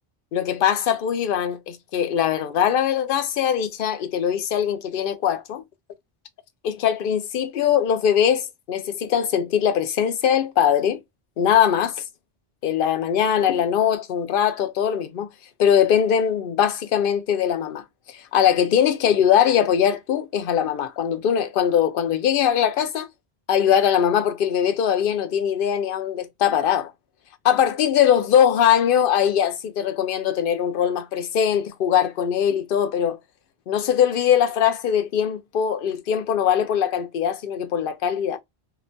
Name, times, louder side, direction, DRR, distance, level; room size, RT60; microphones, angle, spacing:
voice 1, 0.3-5.6 6.6-11.0 11.4-12.0 12.6-15.3 15.6-17.8 18.1-23.1 23.5-26.9 27.4-33.2 33.7-38.4, left 9 dB, 65° left, 0.7 m, -21 dB
2.9 x 2.1 x 2.5 m
omnidirectional pair, 1.0 m